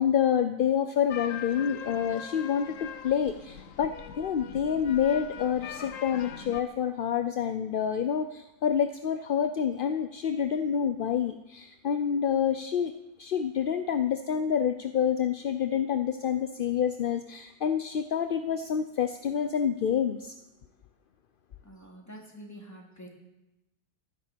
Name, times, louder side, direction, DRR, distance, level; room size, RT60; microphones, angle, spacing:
voice 1, 0.0-12.9 13.2-20.4, left 8 dB, 50° left, 9 dB, 0.7 m, -28 dB
sound 1, 1.1-6.6, left 8 dB, 70° left, 1.3 m, -41 dB
voice 2, 21.6-23.1, equal, 10° left, -1 dB, 2.8 m, -47 dB
12.5 x 11.0 x 8.5 m, 0.97 s
omnidirectional pair, 1.4 m